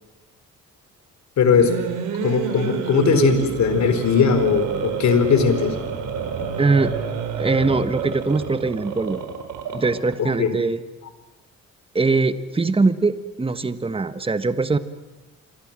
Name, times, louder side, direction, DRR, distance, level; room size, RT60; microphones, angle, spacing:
voice 1, 1.4-1.7 2.2-5.7 10.2-10.5, left 6 dB, 65° left, 9 dB, 4.4 m, -19 dB
sound 1, 1.4-10.2, right 7 dB, 85° right, 4.4 m, -28 dB
voice 2, 6.6-6.9 7.4-9.2 9.7-10.8 11.9-14.8, right 3 dB, 20° right, 11 dB, 1.4 m, -21 dB
27.5 x 24.5 x 7.6 m, 1.1 s
cardioid pair, 90°, 30 cm